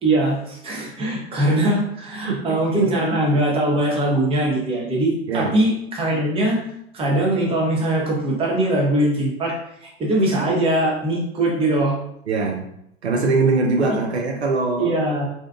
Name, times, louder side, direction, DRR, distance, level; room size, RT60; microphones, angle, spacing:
voice 1, 0.0-6.6 6.9-9.5 9.8-12.0 13.2-13.4 13.8-14.0 14.8-15.3, right 1 dB, 15° right, -2 dB, 0.7 m, -21 dB
voice 2, 2.2-2.9 5.3-5.5 12.3-12.7 13.0-14.9, right 3 dB, 85° right, 1 dB, 0.5 m, -22 dB
2.6 x 2.3 x 2.2 m, 0.75 s
figure-of-eight pair, 90°, 32 cm